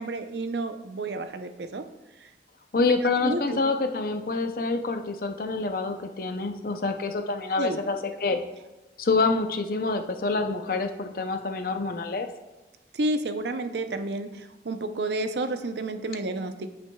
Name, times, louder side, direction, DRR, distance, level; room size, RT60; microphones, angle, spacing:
voice 1, 0.0-1.8 2.2-2.3 3.0-3.6 7.6-7.8 8.3-8.4 12.9-16.7, right 2 dB, 75° right, 8 dB, 0.6 m, -31 dB
voice 2, 2.7-8.4 9.0-12.3, left 3 dB, 55° left, 6 dB, 0.6 m, -27 dB
13.5 x 6.1 x 2.3 m, 1.1 s
head